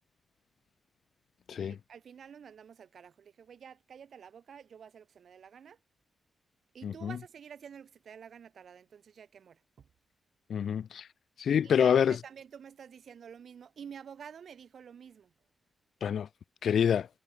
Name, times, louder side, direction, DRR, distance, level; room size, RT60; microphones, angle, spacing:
voice 1, 1.6-5.8 6.7-9.9 11.6-15.3, right 7 dB, 70° right, 2.1 m, -49 dB
voice 2, 6.8-7.2 10.5-11.1 11.4-12.2 16.0-16.3 16.6-17.1, left 8 dB, 75° left, 0.3 m, -26 dB
supercardioid pair, 50°, 0 cm